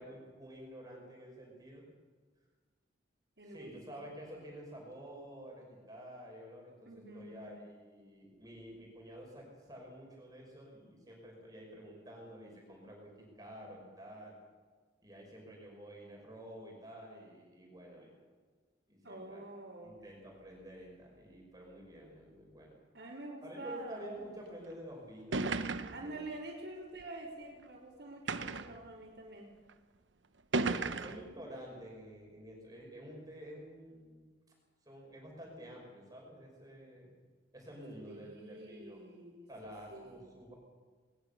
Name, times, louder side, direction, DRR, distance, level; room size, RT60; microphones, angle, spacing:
voice 1, 0.0-1.9 3.4-14.3 15.0-18.2 18.9-19.5 19.8-22.7 23.4-25.4 25.8-26.2 30.6-34.2 34.8-37.2 37.5-39.0 39.5-40.5, equal, 20° right, -2 dB, 5.6 m, -50 dB
voice 2, 3.4-4.1 6.8-7.6 19.0-19.9 22.9-24.1 25.9-29.5 30.8-31.1 38.1-40.2, right 2 dB, 70° right, -7 dB, 4.3 m, -47 dB
sound 1, 24.7-24.8 25.3-26.1 27.0-27.1 28.3-28.8 29.7-29.8 30.5-31.3, right 3 dB, 90° right, 1.0 m, -34 dB
21.0 x 20.5 x 6.8 m, 1.5 s
head